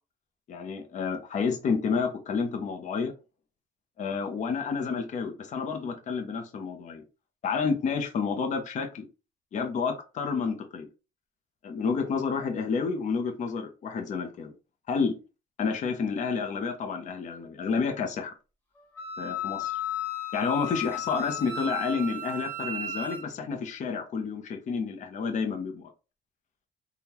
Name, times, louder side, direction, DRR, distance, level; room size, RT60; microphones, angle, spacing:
voice 1, 0.5-3.1 4.0-7.0 7.4-9.1 9.5-10.9 11.6-14.5 14.9-15.2 15.6-18.3 19.2-19.8 20.3-25.9, left 5 dB, 45° left, 0.7 m, -30 dB
Wind instrument woodwind instrument, 19.0-23.2, left 4 dB, 15° left, 1.2 m, -34 dB
3.6 x 2.3 x 2.9 m
cardioid pair, 110°, 17 cm